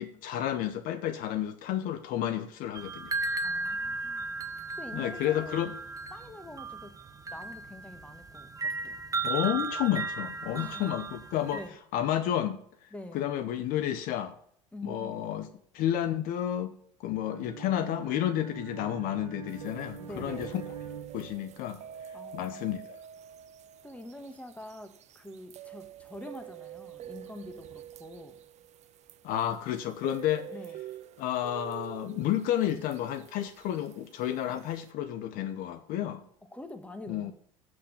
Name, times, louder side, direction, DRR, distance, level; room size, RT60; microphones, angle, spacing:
voice 1, 0.0-3.2 4.9-5.7 9.2-11.6 11.9-12.6 12.8-12.9 13.1-14.3 14.8-15.5 15.7-16.7 17.0-20.6 21.1-21.8 22.3-23.0 29.2-30.5 31.2-36.2 37.1-37.3, left 11 dB, 60° left, 11 dB, 0.8 m, -31 dB
sound 1, 2.7-11.7, right 3 dB, 20° right, 0.9 m, -35 dB
voice 2, 3.4-4.3 4.8-5.6 6.1-6.9 7.3-9.1 10.5-11.1 11.5-11.8 12.9-13.3 14.7-15.3 17.8-18.0 20.0-20.6 22.1-22.8 23.8-28.4 30.5-30.8 36.5-37.3, left 1 dB, 10° left, 8 dB, 1.6 m, -45 dB
Bowed string instrument, 17.2-21.8, right 6 dB, 85° right, 1.2 m, -45 dB
sound 2, 19.5-34.9, right 11 dB, 45° right, 0.6 m, -47 dB
7.5 x 6.2 x 7.2 m, 0.64 s
hypercardioid pair, 70°, 16 cm